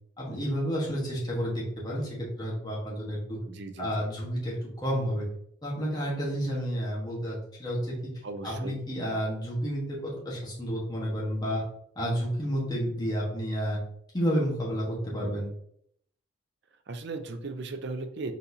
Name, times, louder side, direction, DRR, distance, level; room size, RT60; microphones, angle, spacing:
voice 1, 0.2-3.4 3.8-5.3 5.6-8.0 8.4-11.6 11.9-13.8 14.1-15.5, equal, 20° left, -5 dB, 1.2 m, -30 dB
voice 2, 3.5-4.0 8.2-8.8 16.9-18.3, right 3 dB, 55° right, 7 dB, 0.5 m, -37 dB
4.1 x 4.1 x 2.7 m, 0.69 s
head